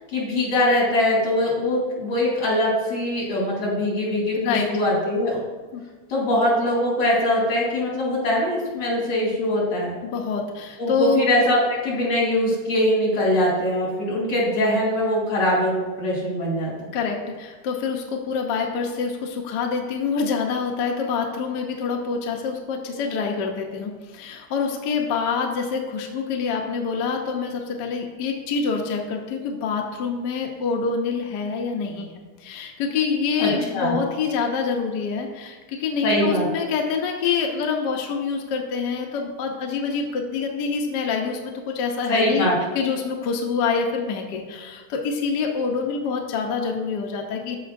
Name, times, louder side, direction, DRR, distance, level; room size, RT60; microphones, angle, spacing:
voice 1, 0.1-5.4 6.1-10.0 10.8-16.9 33.4-33.9 36.0-36.5 42.1-42.8, left 1 dB, 90° left, -5 dB, 3.2 m, -22 dB
voice 2, 4.3-4.7 5.7-5.8 10.0-11.2 16.9-32.1 32.4-42.5 42.7-47.6, left 5 dB, 65° left, 2 dB, 1.3 m, -26 dB
13.0 x 4.8 x 2.5 m, 1.3 s
omnidirectional pair, 2.3 m